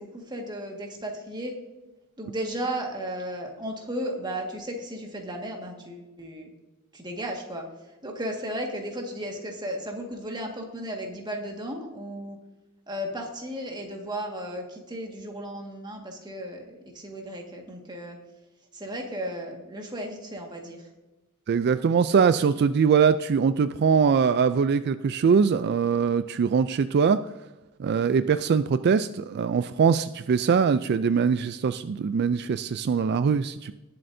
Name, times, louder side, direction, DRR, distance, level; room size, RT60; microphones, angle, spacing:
voice 1, 0.0-1.6 2.2-6.5 6.9-7.6 8.0-12.4 12.9-18.2 18.7-20.9, equal, 20° right, 1 dB, 1.7 m, -35 dB
voice 2, 21.5-27.2 27.8-33.7, right 6 dB, 50° right, 12 dB, 0.3 m, -22 dB
19.5 x 7.7 x 2.7 m, 1.1 s
head